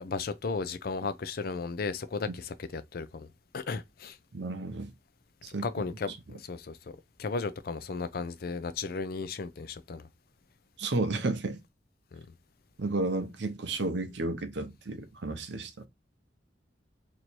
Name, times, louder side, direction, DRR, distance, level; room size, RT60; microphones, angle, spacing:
voice 1, 0.0-3.3 3.5-4.2 5.5-6.8 7.2-10.1 12.1-12.2, left 4 dB, 55° left, 0.5 m, -35 dB
voice 2, 4.3-4.9 5.4-5.7 6.1-6.2 10.8-11.6 12.8-15.7, right 2 dB, 75° right, 0.7 m, -32 dB
3.0 x 2.7 x 4.4 m
head